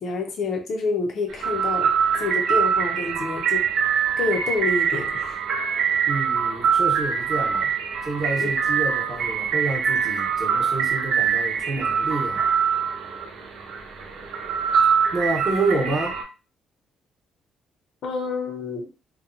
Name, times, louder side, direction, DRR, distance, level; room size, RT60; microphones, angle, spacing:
voice 1, 0.0-1.9 2.2-3.6 4.2-5.4 8.4-8.5 18.0-18.9, left 4 dB, 50° left, 3 dB, 0.5 m, -28 dB
sound 1, 1.3-16.2, right 7 dB, 75° right, 0.6 m, -24 dB
voice 2, 6.1-7.7 8.1-12.4 15.1-16.2, right 3 dB, 35° right, -1 dB, 0.8 m, -28 dB
2.8 x 2.1 x 2.5 m, 0.32 s
cardioid pair, 160°, 0 cm